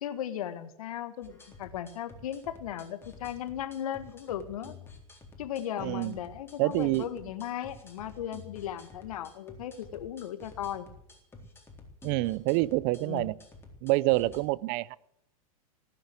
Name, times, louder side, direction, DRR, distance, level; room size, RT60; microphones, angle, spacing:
voice 1, 0.0-4.7 5.4-10.9 13.0-13.3, left 10 dB, 75° left, 11 dB, 1.7 m, -37 dB
sound 1, 1.2-14.4, left 3 dB, 10° left, 3.9 m, -51 dB
voice 2, 5.8-6.1 6.6-7.1 12.0-13.4 13.8-15.0, right 20 dB, 45° right, 23 dB, 0.5 m, -27 dB
18.0 x 9.8 x 8.1 m, 0.76 s
hypercardioid pair, 115°, 19 cm